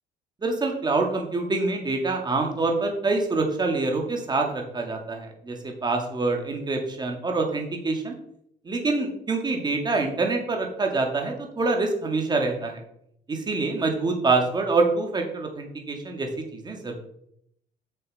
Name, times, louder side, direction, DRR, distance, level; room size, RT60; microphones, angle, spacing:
voice 1, 0.4-8.1 8.7-12.8 13.3-16.9, right 3 dB, 25° right, 2 dB, 2.2 m, -26 dB
8.0 x 6.8 x 5.4 m, 0.73 s
cardioid pair, 110°, 17 cm